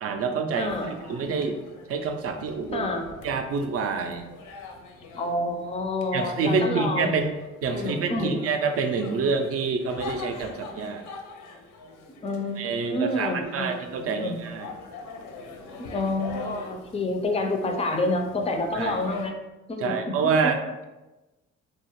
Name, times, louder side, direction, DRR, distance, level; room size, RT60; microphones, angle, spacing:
voice 1, 0.0-0.7 1.1-1.6 1.9-2.9 3.2-4.3 6.1-7.3 7.6-11.1 12.6-14.7 18.7-19.0 19.8-20.9, right 4 dB, 50° right, 6 dB, 0.4 m, -27 dB
voice 2, 0.5-1.0 2.7-3.1 5.1-7.1 7.7-8.4 12.2-13.7 14.0-14.4 15.8-19.3 19.7-20.3, left 2 dB, 20° left, 4 dB, 0.4 m, -28 dB
sound 1, 0.6-19.3, left 4 dB, 85° left, 0.5 m, -43 dB
2.8 x 2.3 x 2.9 m, 1.1 s
cardioid pair, 90°, 30 cm